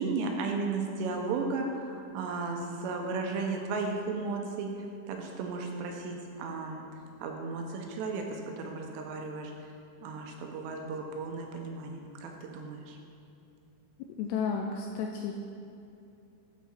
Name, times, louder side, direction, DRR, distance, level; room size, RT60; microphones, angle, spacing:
voice 1, 0.0-4.7 5.1-6.8 7.2-9.5 10.0-13.0, right 4 dB, 80° right, 2 dB, 2.7 m, -34 dB
voice 2, 14.2-15.3, left 6 dB, 85° left, 2 dB, 2.4 m, -32 dB
13.0 x 4.6 x 4.2 m, 2.7 s
omnidirectional pair, 5.2 m